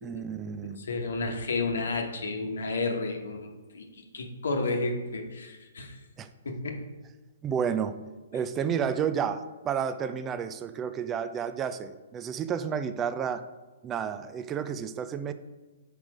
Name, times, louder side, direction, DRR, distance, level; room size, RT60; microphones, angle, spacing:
voice 1, 0.0-0.8 6.2-6.3 7.4-7.9 8.3-13.4 13.8-15.3, right 7 dB, 20° right, 11 dB, 0.4 m, -31 dB
voice 2, 0.8-3.8 4.1-6.0 6.4-6.8, left 3 dB, 75° left, 4 dB, 1.1 m, -31 dB
6.1 x 5.0 x 4.8 m, 1.2 s
hypercardioid pair, 135°, 0 cm